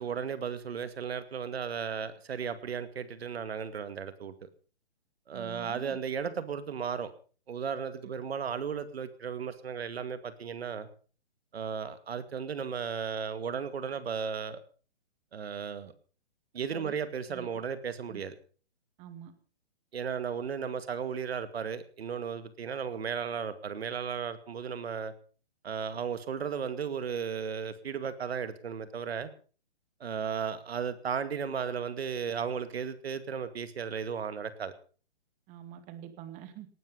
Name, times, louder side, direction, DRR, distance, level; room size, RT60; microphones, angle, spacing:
voice 1, 0.0-4.3 5.3-7.1 7.5-10.9 11.5-14.6 15.3-15.9 16.5-18.3 19.9-25.1 25.6-29.3 30.0-34.7, right 7 dB, 70° right, 12 dB, 2.3 m, -35 dB
voice 2, 5.3-6.0 16.7-16.9 17.3-17.6 18.1-18.2 19.0-19.3 35.5-36.7, right 10 dB, 20° right, 10 dB, 2.1 m, -46 dB
18.5 x 12.5 x 5.5 m, 0.40 s
hypercardioid pair, 145°, 32 cm